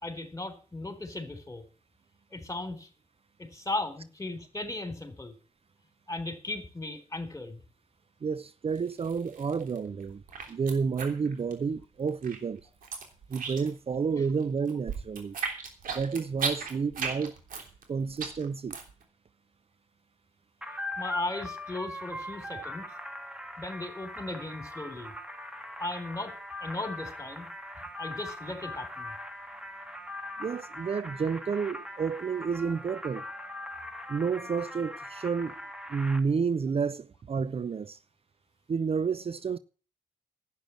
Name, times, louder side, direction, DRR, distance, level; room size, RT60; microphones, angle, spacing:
voice 1, 0.0-1.6 2.3-2.9 3.4-5.4 6.1-7.6 21.0-22.8 23.6-25.1 25.8-26.3 26.6-27.5 28.0-29.1, left 2 dB, 20° left, 3.7 m, -36 dB
voice 2, 8.2-10.2 10.5-12.6 13.3-15.3 15.9-17.3 17.9-18.8 30.4-33.3 34.1-35.6 35.9-38.0 38.7-39.6, right 5 dB, 40° right, 0.7 m, -30 dB
sound 1, 8.8-9.8 10.0-11.8 12.1-13.9 14.2-19.0, right 5 dB, 70° right, 3.4 m, -35 dB
sound 2, 20.6-36.2, left 1 dB, 5° right, 2.4 m, -41 dB
11.5 x 9.3 x 7.5 m
hypercardioid pair, 45°, 15 cm